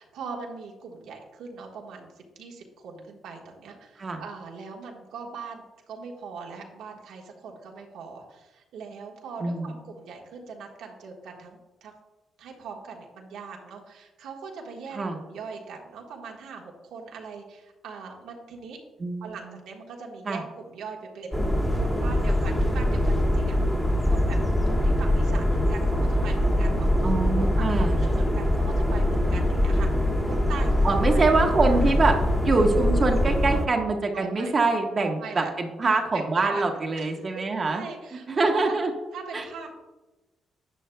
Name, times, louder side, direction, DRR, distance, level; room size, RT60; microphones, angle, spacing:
voice 1, 0.0-11.9 12.4-15.0 15.2-18.8 19.2-21.4 21.7-23.6 24.0-31.2 31.7-32.0 34.1-34.7 35.2-35.5 36.1-36.6 36.9-38.8 39.1-39.7, right 5 dB, 80° right, 0 dB, 1.4 m, -41 dB
voice 2, 19.0-19.5 20.3-20.4 27.0-27.9 30.8-32.2 32.4-37.8 38.3-38.9 39.3-39.4, right 3 dB, 45° right, 2 dB, 1.3 m, -24 dB
sound 1, 21.3-33.7, left 1 dB, 5° left, 2.1 m, -23 dB
10.5 x 10.0 x 2.3 m, 1.1 s
supercardioid pair, 55°, 0 cm